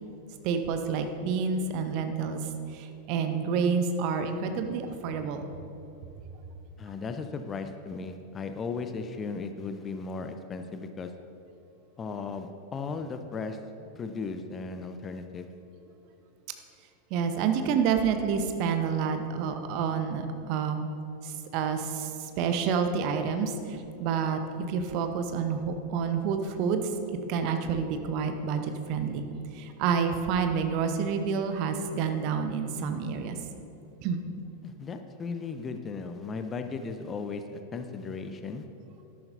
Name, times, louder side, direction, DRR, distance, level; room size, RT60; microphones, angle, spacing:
voice 1, 0.4-2.4 2.7-5.5 17.1-20.9 21.2-24.4 24.7-29.2 29.5-33.4 34.0-34.2, right 6 dB, 45° right, 7 dB, 0.9 m, -29 dB
voice 2, 6.8-11.1 12.0-13.6 13.9-15.5 34.6-38.7, left 4 dB, 20° left, 8 dB, 0.6 m, -36 dB
13.0 x 11.5 x 2.7 m, 2.8 s
figure-of-eight pair, 90°, 0 cm